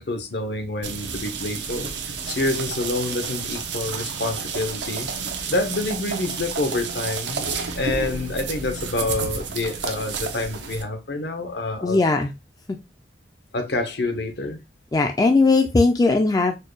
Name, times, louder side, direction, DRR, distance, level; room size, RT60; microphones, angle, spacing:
voice 1, 0.0-5.1 5.5-7.5 7.7-12.0 13.5-14.6, left 2 dB, 70° left, 0.8 m, -27 dB
sound 1, 0.8-10.8, right 5 dB, 85° right, 0.7 m, -31 dB
voice 2, 11.8-12.3 12.7-12.8 14.9-16.6, left 3 dB, 20° left, 0.3 m, -18 dB
4.4 x 2.3 x 3.0 m
head